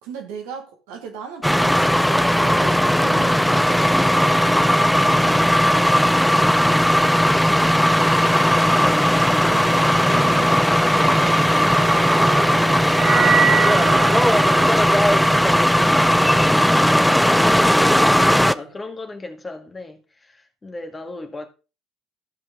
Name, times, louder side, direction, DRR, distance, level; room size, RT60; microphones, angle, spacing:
voice 1, 0.0-5.8 9.5-14.9 17.8-18.7, right 6 dB, 70° right, 2.2 m, -37 dB
sound 1, 1.4-18.5, equal, 5° left, 0.5 m, -17 dB
sound 2, 11.2-17.6, right 7 dB, 40° right, 0.9 m, -26 dB
voice 2, 17.5-21.5, left 3 dB, 25° left, 2.0 m, -37 dB
14.5 x 5.3 x 3.7 m
hypercardioid pair, 60°, 0 cm